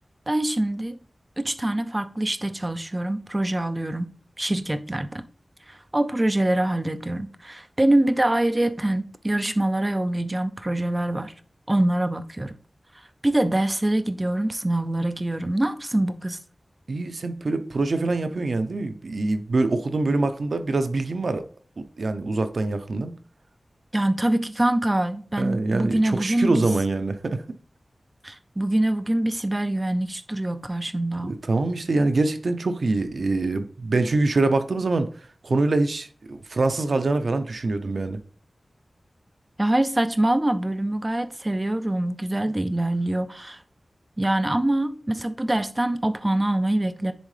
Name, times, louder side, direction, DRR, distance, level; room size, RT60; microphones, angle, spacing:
voice 1, 0.3-1.0 1.4-5.2 5.7-11.3 11.7-12.6 13.2-16.4 23.9-26.6 28.2-31.4 39.6-43.6 44.2-47.1, right 1 dB, 25° right, 0.6 m, -24 dB
voice 2, 16.9-21.4 22.0-23.2 25.4-27.4 31.3-35.1 35.4-38.2, right 2 dB, 75° right, 0.6 m, -24 dB
10.0 x 3.6 x 3.3 m
wide cardioid pair, 75°, 0 cm